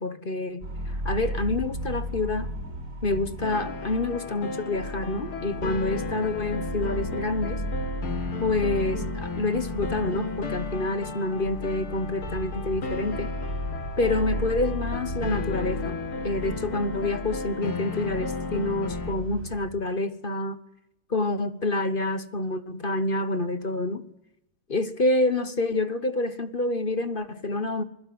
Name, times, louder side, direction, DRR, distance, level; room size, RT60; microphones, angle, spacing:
voice 1, 0.0-2.5 3.0-7.6 8.4-13.3 14.0-16.0 16.2-20.6 21.1-24.0 24.7-27.8, left 2 dB, 30° left, 1.1 m, -27 dB
sound 1, 0.6-19.6, right 1 dB, 35° right, 4.3 m, -35 dB
sound 2, 3.4-19.2, left 4 dB, 80° left, 3.2 m, -35 dB
27.5 x 21.5 x 7.9 m
omnidirectional pair, 2.3 m